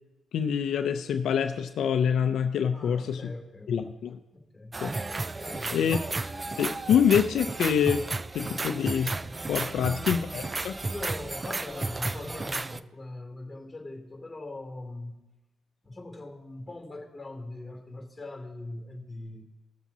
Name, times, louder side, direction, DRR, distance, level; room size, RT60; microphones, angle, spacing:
voice 1, 0.3-3.3 3.7-4.2 4.8-4.9 5.7-6.0 6.6-8.1 8.3-9.2 9.5-10.7, left 8 dB, 70° left, 6 dB, 0.5 m, -26 dB
voice 2, 2.7-3.9 4.3-4.8 5.4-6.0 9.7-10.6 10.9-15.2 15.8-19.4, left 2 dB, 10° left, 2 dB, 2.7 m, -41 dB
sound 1, 4.7-12.8, right 3 dB, 25° right, 0.3 m, -33 dB
20.0 x 7.3 x 2.8 m, 1.0 s
cardioid pair, 90°, 0 cm